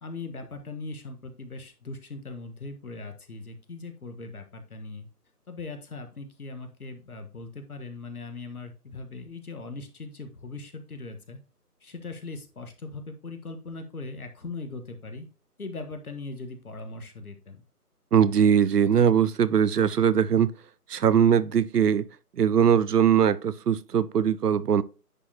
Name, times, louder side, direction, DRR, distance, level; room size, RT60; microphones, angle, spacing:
voice 1, 0.0-5.1 5.5-11.4 11.8-15.3 15.6-17.6, left 3 dB, 65° left, 1.5 m, -40 dB
voice 2, 18.1-20.5 20.9-22.1 22.4-24.8, right 8 dB, 75° right, 0.6 m, -21 dB
9.7 x 4.5 x 2.8 m
figure-of-eight pair, 160°, 47 cm